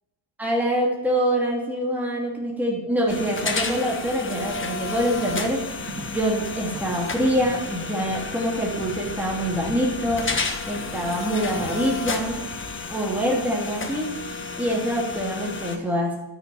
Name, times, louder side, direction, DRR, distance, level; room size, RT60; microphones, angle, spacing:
voice 1, 0.4-5.8 6.1-12.4 12.9-16.1, equal, 5° right, -3 dB, 2.7 m, -25 dB
sound 1, 3.1-15.8, left 4 dB, 25° left, 1.4 m, -32 dB
sound 2, 4.4-12.8, right 1 dB, 40° right, 2.1 m, -42 dB
12.5 x 6.6 x 7.8 m, 0.99 s
cardioid pair, 135°, 43 cm